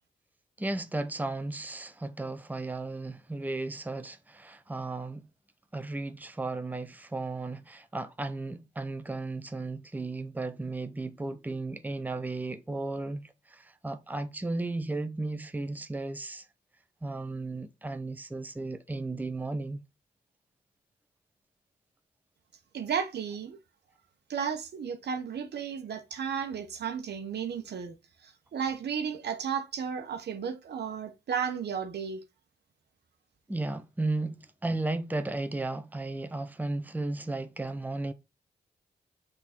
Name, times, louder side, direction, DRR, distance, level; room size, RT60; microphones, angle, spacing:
voice 1, 0.6-5.3 5.7-16.5 17.0-19.8 33.5-38.1, right 2 dB, 10° right, 0.8 m, -34 dB
voice 2, 22.7-23.6 24.3-28.0 28.2-32.2, right 7 dB, 70° right, 1.0 m, -33 dB
6.2 x 3.9 x 4.4 m
cardioid pair, 55°, 18 cm